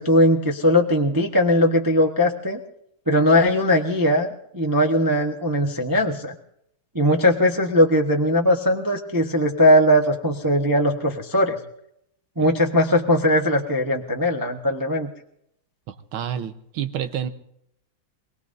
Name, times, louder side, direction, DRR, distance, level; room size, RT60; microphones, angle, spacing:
voice 1, 0.0-2.6 3.1-6.3 6.9-11.6 12.4-15.1, equal, 15° right, 1 dB, 0.6 m, -19 dB
voice 2, 15.9-17.3, right 9 dB, 75° right, 10 dB, 1.7 m, -29 dB
26.5 x 18.5 x 2.7 m, 0.76 s
omnidirectional pair, 2.3 m